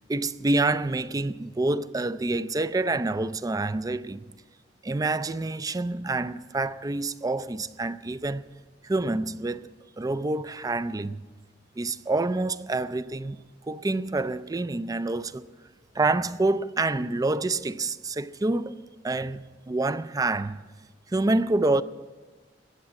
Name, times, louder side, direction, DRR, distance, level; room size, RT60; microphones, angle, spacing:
voice 1, 0.1-4.2 4.8-8.5 8.8-9.7 10.0-11.2 11.8-15.5 15.9-20.6 21.1-21.8, right 2 dB, 20° right, 0.4 m, -27 dB
20.0 x 8.5 x 7.6 m
head